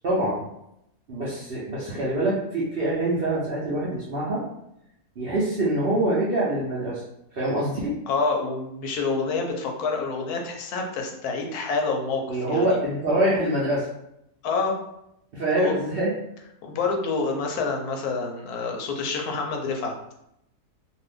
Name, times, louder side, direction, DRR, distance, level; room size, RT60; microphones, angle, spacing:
voice 1, 0.0-0.4 1.1-4.4 5.2-7.0 7.3-8.0 12.3-13.9 15.3-16.1, right 1 dB, 60° right, -7 dB, 0.6 m, -25 dB
voice 2, 8.1-12.8 14.4-14.8 15.6-15.7 16.6-19.9, left 4 dB, 80° left, 2 dB, 1.1 m, -27 dB
2.6 x 2.4 x 3.4 m, 0.81 s
omnidirectional pair, 1.7 m